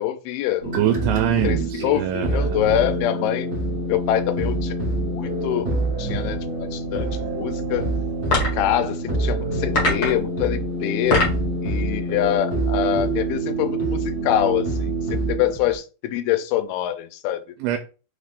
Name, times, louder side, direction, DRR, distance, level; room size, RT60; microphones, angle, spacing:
voice 1, 0.0-0.9 1.4-3.5 3.9-6.5 6.7-7.9 8.3-11.2 11.6-17.4, left 12 dB, 85° left, 2.5 m, -25 dB
sound 1, 0.6-15.7, right 2 dB, 25° right, 1.7 m, -26 dB
voice 2, 0.7-2.6 17.6-17.8, right 11 dB, 85° right, 2.4 m, -24 dB
sound 2, 8.2-8.7 9.7-10.3 10.9-11.5, left 2 dB, 55° left, 1.3 m, -22 dB
5.6 x 3.4 x 2.5 m
omnidirectional pair, 4.4 m